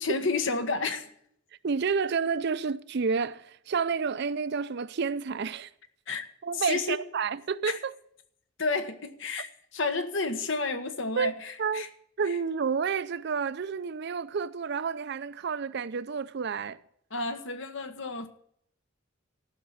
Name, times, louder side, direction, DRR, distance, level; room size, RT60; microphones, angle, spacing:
voice 1, 0.0-1.1 6.1-6.3 6.5-7.0 7.7-7.8 8.6-11.9 12.3-12.4 17.1-18.3, left 3 dB, 65° left, 1.3 m, -31 dB
voice 2, 1.6-5.7 6.4-7.9 11.2-11.3 11.6-11.9 12.2-16.8, right 5 dB, 55° right, 0.5 m, -30 dB
14.5 x 5.9 x 7.9 m
head